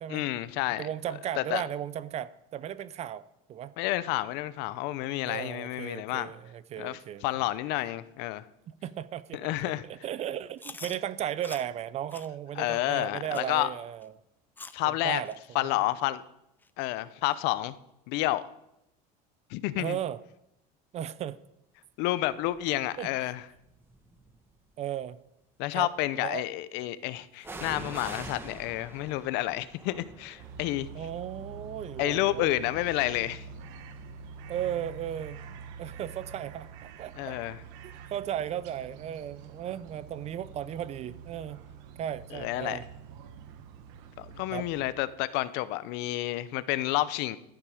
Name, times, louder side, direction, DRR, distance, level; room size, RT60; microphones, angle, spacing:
voice 1, 0.1-0.9 1.4-1.6 3.8-6.3 6.8-8.4 9.3-9.9 12.6-13.7 14.7-15.2 15.5-16.2 16.8-17.7 18.1-18.4 19.5-20.0 22.0-23.4 25.6-30.9 32.0-33.5 37.2-37.6 42.3-42.8 44.2-47.4, left 16 dB, 70° left, 0.7 m, -30 dB
voice 2, 0.8-3.7 5.2-7.4 8.8-14.2 14.9-15.4 15.6-15.7 19.8-20.2 20.9-21.4 23.0-23.1 24.8-25.2 25.7-25.9 26.2-26.4 30.9-32.6 34.5-35.4 35.8-37.4 38.1-41.6 42.0-42.8 44.5-44.7, right 10 dB, 35° right, 0.5 m, -35 dB
Chewing mastication, 10.6-11.0 11.4-11.6 12.1-12.3 12.7-12.8 13.3-13.5 14.0-14.1 14.6-14.8 15.3-15.4 16.0-16.1 16.6-16.7 17.3-17.4, left 3 dB, 10° left, 0.5 m, -45 dB
sound 1, 22.5-22.8 23.6-24.5 27.4-35.1 35.3-35.4, right 2 dB, 10° right, 1.1 m, -46 dB
sound 2, 30.4-44.9, right 5 dB, 80° right, 1.1 m, -46 dB
14.0 x 9.0 x 4.9 m
cardioid pair, 140°, 18 cm